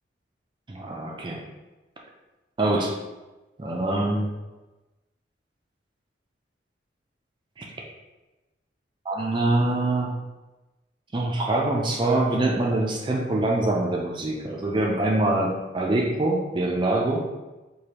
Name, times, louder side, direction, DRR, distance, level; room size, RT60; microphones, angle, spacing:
voice 1, 0.7-1.4 2.6-2.9 3.6-4.3 7.6-7.7 9.1-10.2 11.1-17.2, right 2 dB, 25° right, -1 dB, 0.4 m, -24 dB
4.9 x 2.2 x 2.9 m, 1.1 s
head